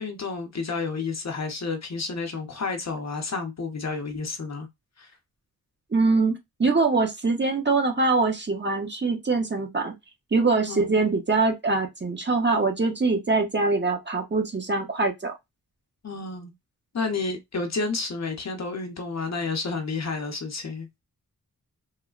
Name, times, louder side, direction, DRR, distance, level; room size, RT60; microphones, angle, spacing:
voice 1, 0.0-4.7 5.0-5.1 10.7-10.9 16.0-16.5 16.9-21.0, left 4 dB, 45° left, 0.7 m, -30 dB
voice 2, 5.9-6.3 6.6-9.9 10.3-15.3, right 3 dB, 30° right, 0.6 m, -23 dB
3.1 x 2.1 x 2.3 m
wide cardioid pair, 120°, 37 cm